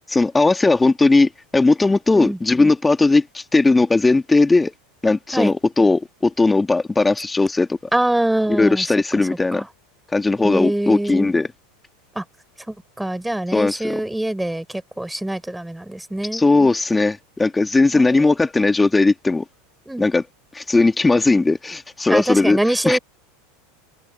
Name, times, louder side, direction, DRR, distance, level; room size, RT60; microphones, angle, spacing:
voice 1, 0.1-4.7 5.0-7.8 8.5-9.6 10.1-11.5 13.5-14.0 16.3-19.4 20.0-20.2 20.5-22.6 22.9-23.0, left 3 dB, 10° left, 2.1 m, -17 dB
voice 2, 7.9-8.8 9.5-9.7 10.4-11.3 12.1-12.2 12.7-16.4 17.9-18.3 19.9-20.0 22.1-23.0, right 1 dB, 5° right, 4.6 m, -24 dB
figure-of-eight pair, 85°, 0 cm